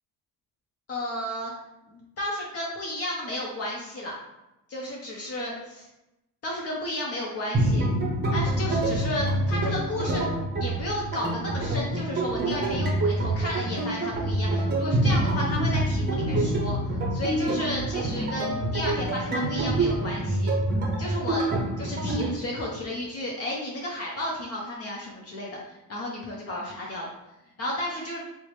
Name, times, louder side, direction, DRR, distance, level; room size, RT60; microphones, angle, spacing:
voice 1, 0.9-1.5 1.9-4.1 4.7-5.9 6.4-7.8 8.3-10.2 10.6-16.8 17.1-20.5 21.0-21.5 21.8-27.1 27.6-28.2, left 1 dB, 40° left, -3 dB, 0.7 m, -33 dB
sound 1, 7.5-22.3, right 1 dB, 25° right, 0.7 m, -26 dB
4.3 x 2.1 x 3.1 m, 0.93 s
cardioid pair, 150°, 37 cm